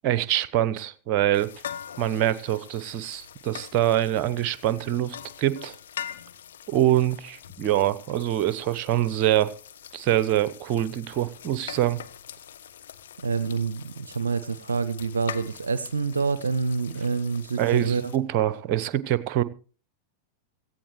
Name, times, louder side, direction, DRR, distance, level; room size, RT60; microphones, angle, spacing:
voice 1, 0.0-1.5 2.0-5.8 6.7-9.5 9.9-12.0 17.6-19.4, right 12 dB, 40° right, 16 dB, 1.0 m, -24 dB
sound 1, 1.3-18.2, left 9 dB, 65° left, 1.1 m, -43 dB
voice 2, 13.2-18.1, right 5 dB, 75° right, 15 dB, 0.7 m, -27 dB
17.5 x 15.0 x 3.2 m, 0.38 s
figure-of-eight pair, 90°, 0 cm